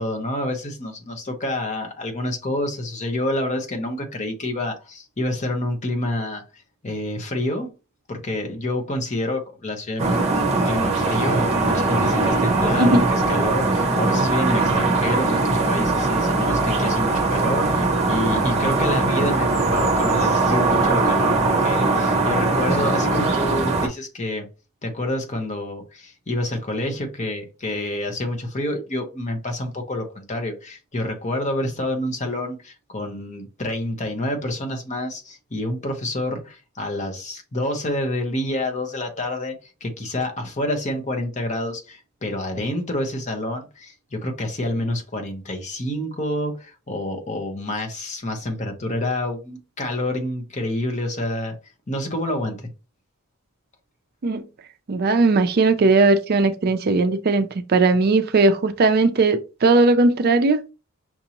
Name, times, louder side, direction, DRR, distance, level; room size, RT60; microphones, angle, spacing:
voice 1, 0.0-7.7 8.1-24.5 24.8-51.5 51.9-52.7, left 1 dB, 30° left, 0.9 m, -28 dB
sound 1, 10.0-23.9, right 3 dB, 30° right, 0.9 m, -20 dB
voice 2, 12.7-13.1 54.2-54.4 54.9-60.6, right 3 dB, 45° right, 0.4 m, -18 dB
5.9 x 2.7 x 2.9 m
head